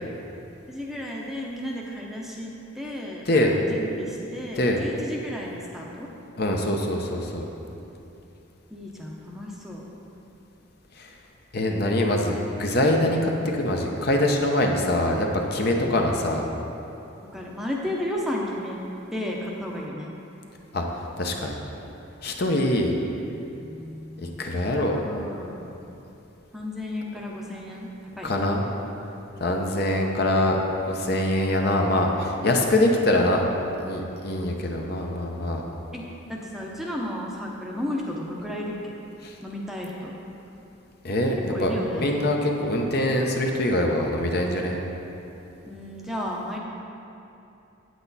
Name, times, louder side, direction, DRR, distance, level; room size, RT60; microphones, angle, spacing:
voice 1, 0.7-6.1 8.7-9.9 15.7-16.1 17.3-18.8 19.1-20.1 23.6-24.4 24.7-25.7 26.5-27.9 28.2-28.4 35.9-36.0 36.3-38.9 39.4-40.1 41.5-42.1 45.7-46.6, left 1 dB, ahead, -3 dB, 0.7 m, -33 dB
voice 2, 3.3-3.6 4.6-4.8 6.4-7.5 11.0-11.1 11.5-16.4 20.7-20.8 21.2-21.5 22.2-22.9 24.2-25.0 28.2-28.7 29.4-30.6 30.9-33.4 33.8-35.7 39.2-39.3 41.0-44.8, left 1 dB, 50° left, 1 dB, 0.8 m, -24 dB
8.9 x 8.0 x 4.1 m, 2.9 s
head